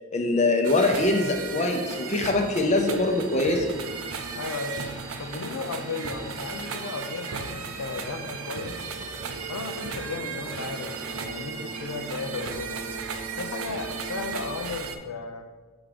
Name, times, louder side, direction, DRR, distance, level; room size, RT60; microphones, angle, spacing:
voice 1, 0.1-3.7, left 2 dB, 30° left, 3 dB, 0.6 m, -23 dB
sound 1, 0.6-15.0, right 5 dB, 70° right, 0.5 m, -36 dB
sound 2, 0.7-14.6, right 2 dB, 15° right, 0.6 m, -42 dB
voice 2, 4.3-4.8 5.2-8.8 9.5-12.8 13.4-15.5, left 4 dB, 80° left, 6 dB, 0.5 m, -35 dB
5.8 x 3.6 x 5.1 m, 1.4 s
head